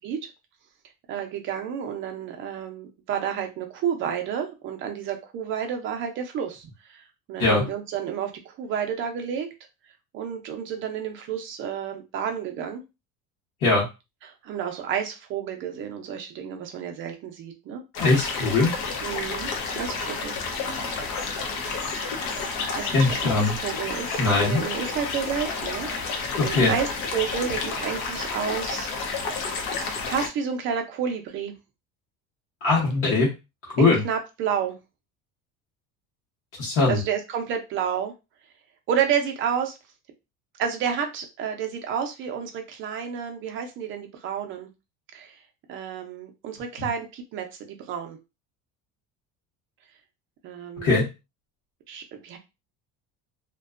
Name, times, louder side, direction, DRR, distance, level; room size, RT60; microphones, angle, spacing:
voice 1, 1.1-7.0 7.3-9.5 10.1-12.8 14.2-17.8 19.0-20.4 22.8-28.9 30.1-31.5 33.8-34.8 36.9-38.1 38.9-39.8 40.6-44.7 45.1-45.4 45.7-48.2 50.4-51.0 51.9-52.4, right 8 dB, 35° right, 4 dB, 0.5 m, -30 dB
sound 1, 17.9-30.3, left 4 dB, 70° left, 0.7 m, -30 dB
voice 2, 18.0-18.7 22.9-23.5 24.2-24.6 26.4-26.7 32.6-33.3 33.8-34.0 36.6-37.0 50.8-51.1, left 3 dB, 45° left, -5 dB, 0.9 m, -21 dB
2.5 x 2.2 x 2.4 m, 0.26 s
cardioid pair, 175°, 34 cm